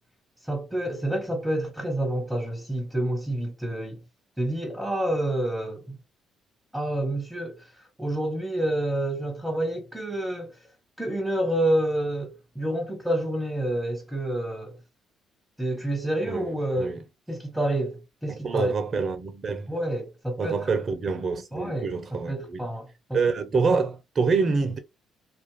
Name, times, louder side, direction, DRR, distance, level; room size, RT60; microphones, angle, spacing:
voice 1, 0.4-4.0 4.4-6.0 6.7-10.6 11.0-14.8 15.6-17.0 17.3-18.7 19.7-20.7 21.5-21.9 22.3-23.2, right 1 dB, ahead, 1.2 m, -28 dB
voice 2, 16.3-17.0 18.3-19.7 20.4-22.6 23.1-24.8, right 4 dB, 45° right, 0.7 m, -26 dB
2.5 x 2.1 x 3.1 m
supercardioid pair, 70°, 0 cm